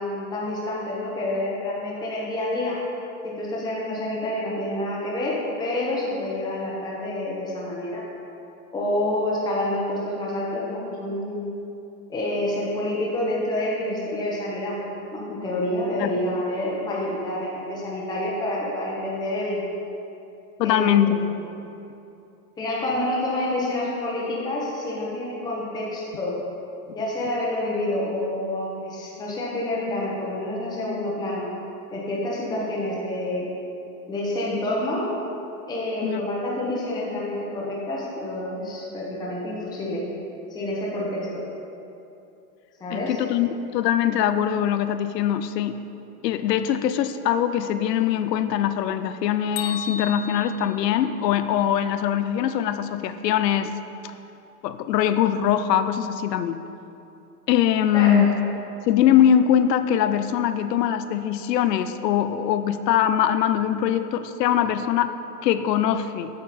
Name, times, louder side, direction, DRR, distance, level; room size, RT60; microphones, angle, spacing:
voice 1, 0.0-2.8 3.2-8.0 8.7-11.5 12.1-14.8 15.1-19.6 20.6-21.2 22.6-26.4 26.9-31.5 31.9-33.5 34.1-35.1 35.7-40.0 40.5-41.3 42.8-43.2 57.9-58.2, left 1 dB, 10° left, -5 dB, 0.9 m, -28 dB
voice 2, 20.6-21.2 36.0-36.3 42.9-45.8 46.2-53.7 54.6-56.6 57.5-58.3 58.9-65.1 65.4-66.3, left 10 dB, 90° left, 11 dB, 0.6 m, -22 dB
Bell, 49.6-51.6, left 5 dB, 40° left, 0.5 m, -35 dB
8.5 x 6.6 x 4.3 m, 2.8 s
supercardioid pair, 150°, 48 cm